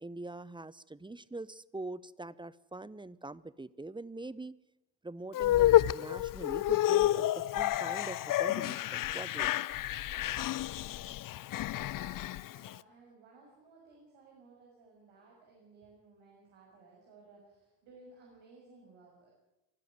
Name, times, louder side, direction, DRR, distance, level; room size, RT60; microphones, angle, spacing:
voice 1, 0.0-4.6 5.0-9.7, right 2 dB, 10° right, 20 dB, 0.8 m, -43 dB
sound 1, 5.3-12.7, left 14 dB, 40° left, 0.7 m, -29 dB
voice 2, 11.8-19.3, right 3 dB, 65° right, -2 dB, 6.9 m, -58 dB
23.5 x 13.0 x 9.6 m, 1.0 s
hypercardioid pair, 55°, 49 cm